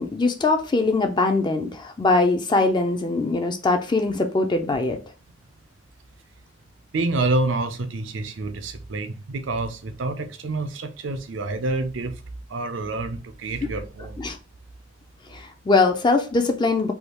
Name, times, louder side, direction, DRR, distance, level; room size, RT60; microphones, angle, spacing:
voice 1, 0.0-5.0 13.6-13.7 14.2-14.4 15.3-16.9, left 3 dB, 25° left, 0.4 m, -22 dB
voice 2, 6.9-12.2 12.5-14.2, right 2 dB, 80° right, 0.6 m, -27 dB
3.4 x 2.3 x 3.0 m
head